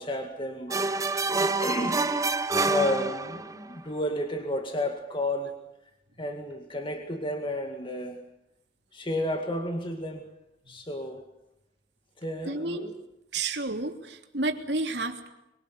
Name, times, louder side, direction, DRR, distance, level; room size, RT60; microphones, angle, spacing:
voice 1, 0.0-2.0 2.7-5.6 6.2-8.2 8.9-10.3 10.7-11.2 12.2-12.9, left 1 dB, 30° left, 4 dB, 2.1 m, -32 dB
sound 1, 0.7-3.7, right 3 dB, 20° right, 1.0 m, -27 dB
voice 2, 12.5-12.9 13.3-15.3, right 2 dB, 70° right, 5 dB, 3.1 m, -31 dB
24.0 x 24.0 x 8.2 m, 0.88 s
head